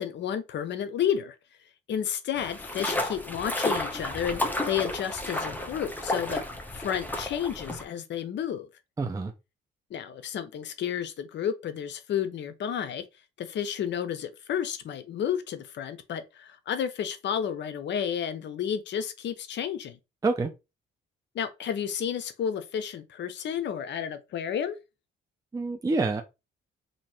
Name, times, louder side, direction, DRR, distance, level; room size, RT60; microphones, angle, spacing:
voice 1, 0.0-1.3 1.9-6.4 6.7-8.7 9.9-13.0 13.4-20.0 21.3-24.7, left 8 dB, 65° left, 0.7 m, -31 dB
sound 1, 2.3-7.8, left 1 dB, 10° left, 0.9 m, -32 dB
voice 2, 9.0-9.3 20.2-20.5 25.5-26.2, right 3 dB, 15° right, 0.5 m, -27 dB
3.0 x 2.7 x 4.2 m
cardioid pair, 90°, 20 cm